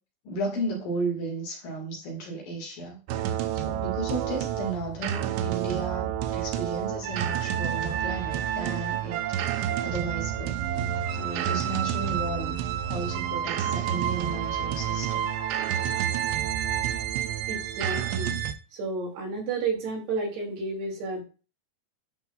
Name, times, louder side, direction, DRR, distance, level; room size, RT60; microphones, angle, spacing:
voice 1, 0.2-3.0 3.5-10.6 11.1-12.6 12.9-15.2, right 2 dB, 60° left, 0 dB, 3.4 m, -34 dB
sound 1, 3.1-18.5, right 10 dB, 85° right, 2.9 m, -29 dB
voice 2, 17.5-18.4 18.7-21.2, right 3 dB, 70° right, -1 dB, 4.4 m, -31 dB
11.0 x 4.9 x 2.4 m, 0.34 s
omnidirectional pair, 5.0 m